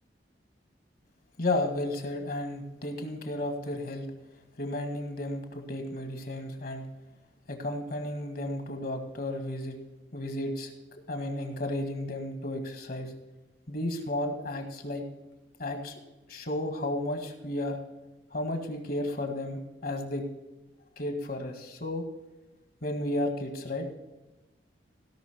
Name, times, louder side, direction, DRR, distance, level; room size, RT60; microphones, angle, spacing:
voice 1, 1.4-4.1 4.6-6.9 7.5-9.8 10.1-10.7 11.1-13.1 13.7-15.0 15.6-15.9 16.3-17.8 18.3-20.3 21.0-22.0 22.8-23.9, left 1 dB, 55° left, 5 dB, 1.9 m, -33 dB
17.0 x 6.0 x 4.6 m, 1.1 s
head